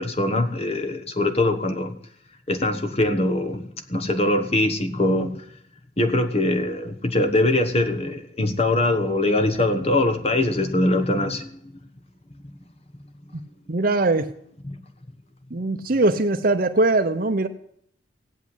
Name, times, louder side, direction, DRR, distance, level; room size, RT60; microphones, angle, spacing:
voice 1, 0.0-2.0 2.5-3.6 3.9-5.4 6.0-11.5 14.6-14.8, left 1 dB, 35° left, 8 dB, 1.2 m, -22 dB
voice 2, 13.7-14.3 15.5-17.5, right 2 dB, 50° right, 7 dB, 0.8 m, -21 dB
16.5 x 8.5 x 9.9 m, 0.68 s
head